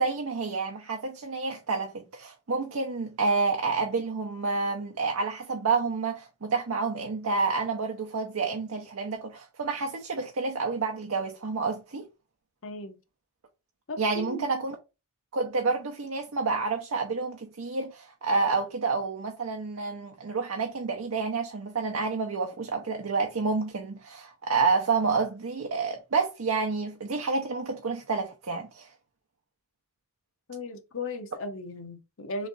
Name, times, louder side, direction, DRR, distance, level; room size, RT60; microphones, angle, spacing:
voice 1, 0.0-12.1 14.0-14.8 15.3-28.9, right 4 dB, 70° right, 0.7 m, -29 dB
voice 2, 12.6-12.9 13.9-14.5 30.5-32.5, left 2 dB, 65° left, 0.8 m, -36 dB
3.6 x 3.2 x 3.9 m
head